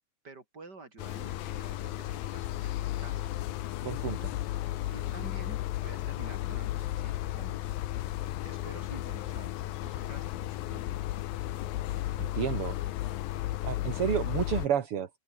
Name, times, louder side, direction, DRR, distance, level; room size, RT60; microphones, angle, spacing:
voice 1, 0.2-3.4 4.9-7.6 8.4-11.0, right 3 dB, 25° right, 4.9 m, -49 dB
sound 1, 1.0-14.7, left 14 dB, 80° left, 2.8 m, -34 dB
voice 2, 3.8-4.3 12.2-12.8 13.6-15.1, right 9 dB, 50° right, 2.1 m, -31 dB
omnidirectional pair, 4.1 m